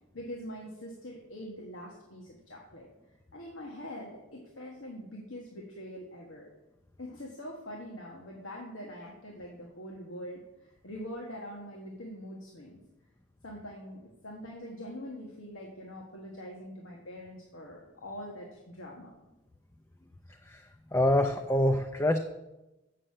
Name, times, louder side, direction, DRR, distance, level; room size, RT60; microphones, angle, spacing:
voice 1, 0.1-2.9 3.3-6.5 7.0-12.8 13.4-19.1, equal, 85° left, -2 dB, 1.5 m, -43 dB
voice 2, 20.4-22.2, left 1 dB, 15° left, 5 dB, 0.5 m, -26 dB
7.7 x 6.6 x 7.5 m, 1.0 s
head